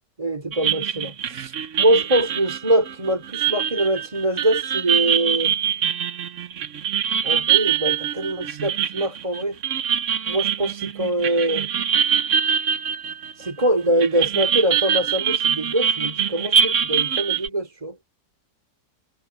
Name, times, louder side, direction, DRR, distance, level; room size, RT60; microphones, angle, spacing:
voice 1, 0.2-5.5 7.2-9.6 10.3-11.7 13.4-18.0, right 1 dB, 20° right, 2.7 m, -23 dB
sound 1, 0.5-13.7 14.0-17.5, right 8 dB, 55° right, 1.0 m, -24 dB
omnidirectional pair, 1.9 m